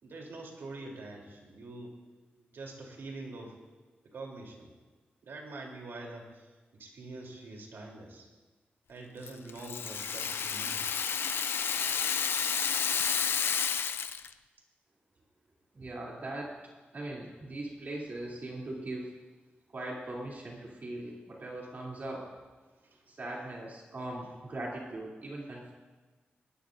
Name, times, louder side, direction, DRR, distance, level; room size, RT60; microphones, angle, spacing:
voice 1, 0.0-2.0 2.4-3.6 4.0-4.7 5.2-8.3 8.9-10.9 22.7-23.1, right 2 dB, 85° right, 0 dB, 3.5 m, -45 dB
Rattle (instrument), 9.3-14.3, left 7 dB, 85° left, 0.6 m, -31 dB
voice 2, 15.7-16.6 16.9-19.1 19.7-22.3 23.1-25.7, right 1 dB, 50° right, -4 dB, 3.1 m, -40 dB
21.0 x 19.5 x 2.7 m, 1.3 s
wide cardioid pair, 110°, 4 cm